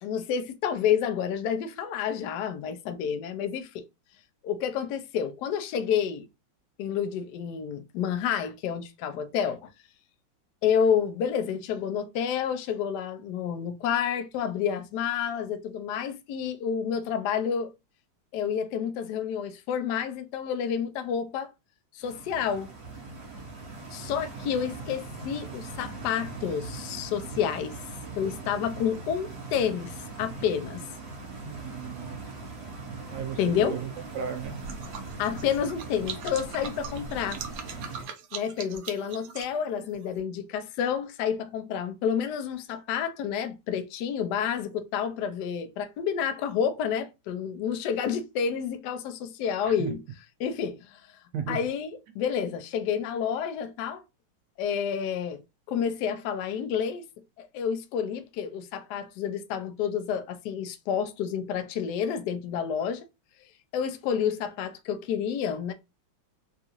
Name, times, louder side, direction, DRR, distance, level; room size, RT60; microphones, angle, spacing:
voice 1, 0.0-3.8 4.4-6.3 6.8-9.7 10.6-17.7 18.3-21.5 21.9-22.7 23.9-27.8 28.2-30.8 33.4-33.8 35.2-37.4 38.3-50.0 50.4-51.0 51.5-54.0 54.6-55.4 55.7-57.0 57.4-63.0 63.7-65.7, left 8 dB, 75° left, 0.9 m, -29 dB
Stream, 22.0-38.0, right 3 dB, 45° right, 1.5 m, -40 dB
voice 2, 31.4-32.2 33.1-33.8 34.1-34.6 49.7-49.9 51.3-51.6, right 7 dB, 70° right, 1.1 m, -35 dB
sound 1, 34.0-40.2, right 6 dB, 85° right, 0.7 m, -41 dB
3.6 x 2.4 x 2.9 m
omnidirectional pair, 2.3 m